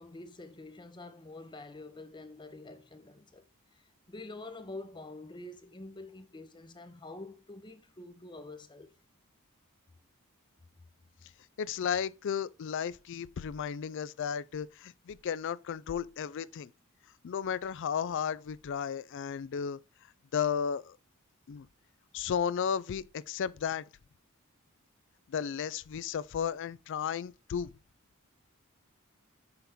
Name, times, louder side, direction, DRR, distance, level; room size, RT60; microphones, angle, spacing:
voice 1, 0.0-3.4 3.7-8.9, left 2 dB, 20° left, 0.7 m, -47 dB
voice 2, 11.6-16.7 17.2-19.8 20.3-21.0 21.5-21.7 22.1-23.8 25.3-27.7, left 7 dB, 55° left, 0.3 m, -34 dB
5.8 x 5.7 x 3.6 m
head